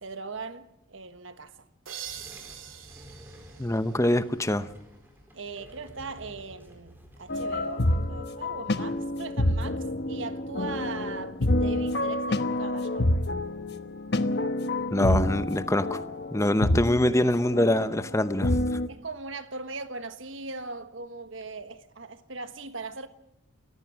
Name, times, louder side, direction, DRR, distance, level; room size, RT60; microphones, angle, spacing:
voice 1, 0.0-1.5 5.3-13.1 18.9-23.1, right 3 dB, 70° right, 1.4 m, -39 dB
sound 1, 1.8-4.6, right 9 dB, 85° right, 2.7 m, -44 dB
sound 2, 1.9-8.0, equal, 10° right, 4.5 m, -51 dB
voice 2, 3.6-4.7 14.9-16.0 16.3-18.6, left 1 dB, 15° left, 0.8 m, -24 dB
sound 3, 7.3-18.9, left 1 dB, 55° left, 1.1 m, -28 dB
28.5 x 15.0 x 6.2 m
head